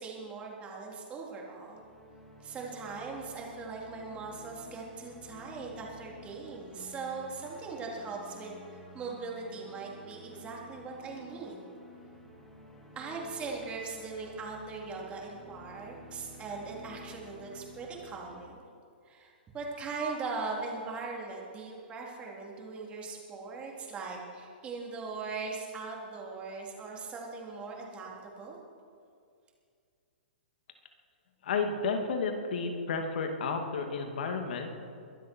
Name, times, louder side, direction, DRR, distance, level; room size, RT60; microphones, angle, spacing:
voice 1, 0.0-1.8 2.4-11.7 13.0-18.6 19.1-28.6, right 4 dB, 20° right, -2 dB, 3.5 m, -40 dB
sound 1, 1.5-18.5, left 2 dB, 5° left, 2.5 m, -52 dB
voice 2, 31.4-34.7, left 4 dB, 65° left, 4 dB, 2.4 m, -32 dB
23.0 x 12.5 x 4.6 m, 2.3 s
hypercardioid pair, 135°, 6 cm